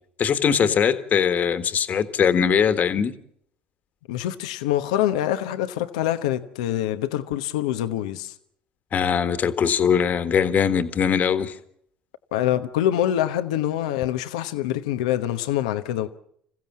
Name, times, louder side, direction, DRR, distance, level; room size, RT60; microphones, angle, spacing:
voice 1, 0.2-3.1 8.9-11.5, left 7 dB, 50° left, 1.7 m, -21 dB
voice 2, 4.1-8.3 12.3-16.1, left 12 dB, 85° left, 1.0 m, -25 dB
27.0 x 15.5 x 7.4 m
hypercardioid pair, 70°, 4 cm